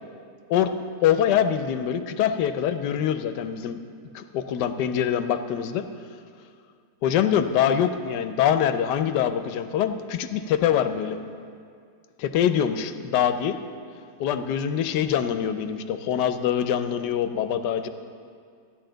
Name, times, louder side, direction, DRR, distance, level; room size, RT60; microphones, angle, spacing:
voice 1, 1.0-3.8 4.1-5.9 7.0-11.2 12.2-13.6 14.2-17.9, left 9 dB, 90° left, 9 dB, 1.2 m, -24 dB
13.5 x 10.5 x 3.9 m, 2.2 s
omnidirectional pair, 1.8 m